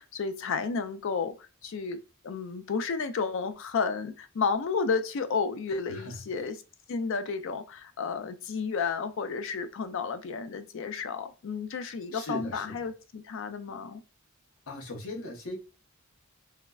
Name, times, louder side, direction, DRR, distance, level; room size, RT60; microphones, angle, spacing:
voice 1, 0.0-2.0 2.2-6.6 6.9-14.0, left 5 dB, 65° left, 0.4 m, -32 dB
voice 2, 5.9-6.3 12.1-12.9 14.7-15.6, left 1 dB, 80° left, 0.8 m, -39 dB
3.5 x 2.1 x 2.2 m
head